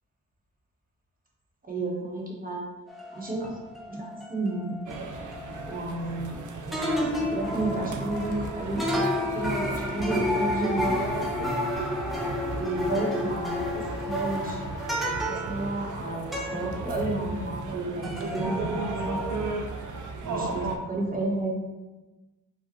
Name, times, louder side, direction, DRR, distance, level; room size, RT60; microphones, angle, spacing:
voice 1, 1.7-2.7 3.1-3.6 3.9-4.7 5.7-6.4 7.3-9.1 9.3-11.3 12.6-14.6 15.0-19.4 20.2-21.5, right 2 dB, 25° right, -2 dB, 1.1 m, -32 dB
sound 1, 2.9-6.4 6.7-17.8 18.0-19.5, left 1 dB, ahead, 0.7 m, -31 dB
sound 2, 4.9-20.8, right 3 dB, 65° right, 0.6 m, -36 dB
4.9 x 2.4 x 4.3 m, 1.1 s
wide cardioid pair, 130°, 32 cm